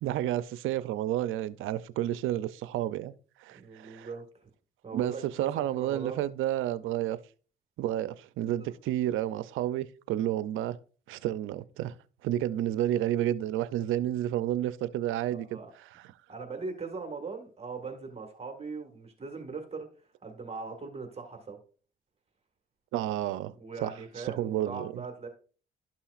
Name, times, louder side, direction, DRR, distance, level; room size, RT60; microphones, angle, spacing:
voice 1, 0.0-3.1 3.4-4.1 4.9-7.2 7.8-10.8 11.1-12.0 12.2-16.0 22.9-23.5 23.8-23.9 24.2-25.0, right 12 dB, 85° right, 0.5 m, -31 dB
voice 2, 3.5-4.5 4.8-6.3 8.6-8.8 15.3-15.7 16.3-21.6 23.5-25.3, right 4 dB, 30° right, 1.6 m, -40 dB
12.0 x 5.7 x 2.4 m
cardioid pair, 90°, 20 cm